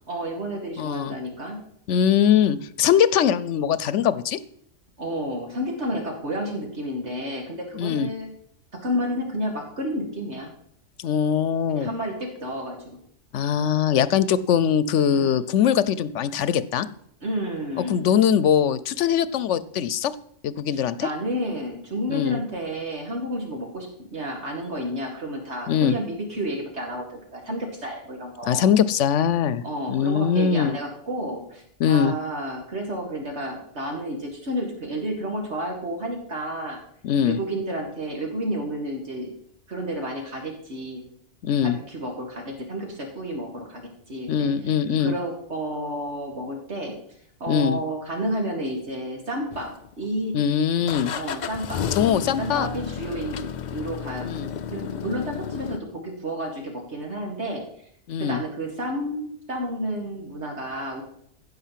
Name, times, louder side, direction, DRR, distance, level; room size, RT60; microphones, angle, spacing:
voice 1, 0.1-1.6 5.0-8.3 8.7-10.5 11.7-12.8 13.5-13.6 15.1-15.4 17.2-18.1 20.7-28.7 29.6-36.8 37.3-39.3 39.7-41.0 41.6-47.0 47.4-50.4 51.1-54.3 54.7-57.6 58.2-61.0, equal, 65° right, 2 dB, 2.3 m, -31 dB
voice 2, 0.8-1.1 1.9-4.4 7.8-8.1 11.0-11.9 13.3-16.9 17.8-20.1 20.4-21.1 22.1-22.4 25.7-26.0 28.5-29.6 29.9-30.8 31.8-32.1 37.0-37.4 41.4-41.8 44.3-45.1 47.5-47.8 50.3-51.1 52.0-52.7 54.2-54.5 58.1-58.4, left 8 dB, 80° left, 16 dB, 1.0 m, -21 dB
sound 1, 49.5-50.2 50.9-55.8, left 7 dB, 50° left, 0.6 m, -32 dB
16.0 x 5.6 x 7.4 m, 0.68 s
omnidirectional pair, 1.2 m